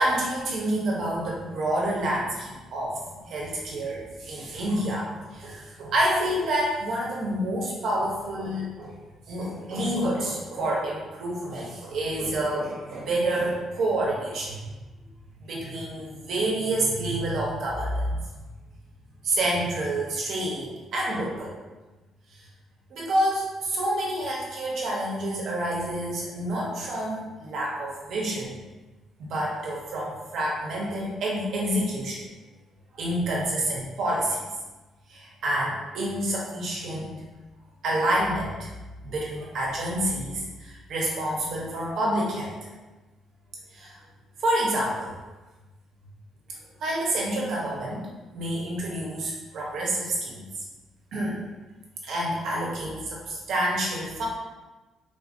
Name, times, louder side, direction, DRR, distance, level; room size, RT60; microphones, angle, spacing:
voice 1, 0.0-8.9 9.3-14.5 15.5-18.2 19.2-21.6 22.9-28.5 29.2-32.3 32.9-34.4 35.1-37.2 37.8-38.7 39.0-42.6 43.7-43.9 44.4-45.1 46.8-48.1 48.3-50.4 51.1-51.4 52.0-54.3, right 1 dB, 60° right, -3 dB, 0.9 m, -28 dB
3.8 x 2.6 x 2.6 m, 1.2 s
cardioid pair, 160°, 0 cm